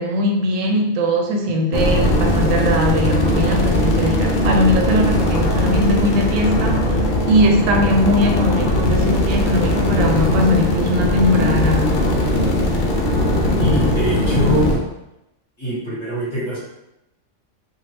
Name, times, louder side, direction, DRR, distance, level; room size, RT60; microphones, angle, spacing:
voice 1, 0.0-12.0, left 1 dB, 90° right, 2 dB, 1.0 m, -20 dB
sound 1, 1.7-14.8, left 1 dB, 55° left, 0.5 m, -19 dB
voice 2, 13.6-14.8 15.6-16.6, left 1 dB, 25° left, -9 dB, 1.1 m, -23 dB
2.6 x 2.4 x 3.3 m, 0.88 s
omnidirectional pair, 1.3 m